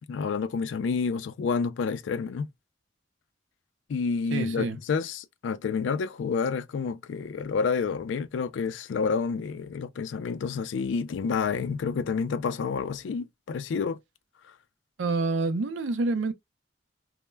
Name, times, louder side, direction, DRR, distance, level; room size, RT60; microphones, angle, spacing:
voice 1, 0.1-2.5 3.9-14.0, left 5 dB, 80° left, 0.3 m, -29 dB
voice 2, 4.3-4.8 15.0-16.3, right 3 dB, 90° right, 0.5 m, -27 dB
2.1 x 2.1 x 3.1 m
head